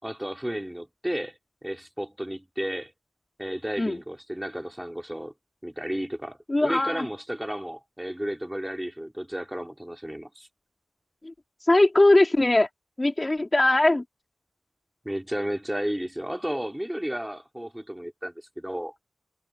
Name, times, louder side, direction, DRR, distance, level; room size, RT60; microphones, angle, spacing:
voice 1, 0.0-2.9 3.4-5.3 5.6-10.5 15.0-18.9, equal, 10° right, 4.9 m, -33 dB
voice 2, 6.5-7.1 11.2-11.3 11.7-12.7 13.0-14.0, left 2 dB, 30° left, 3.4 m, -20 dB
cardioid pair, 45°, 0 cm